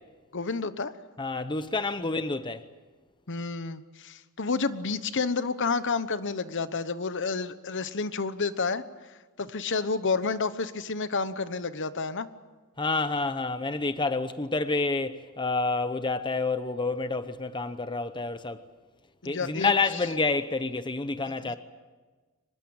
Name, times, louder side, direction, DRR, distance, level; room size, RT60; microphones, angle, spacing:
voice 1, 0.3-0.9 3.3-8.8 9.4-12.3 19.2-19.7 21.4-21.6, left 4 dB, 55° left, 1.1 m, -30 dB
voice 2, 1.2-2.6 12.8-18.6 19.2-21.6, left 3 dB, 20° left, 0.8 m, -28 dB
24.5 x 20.5 x 8.8 m
head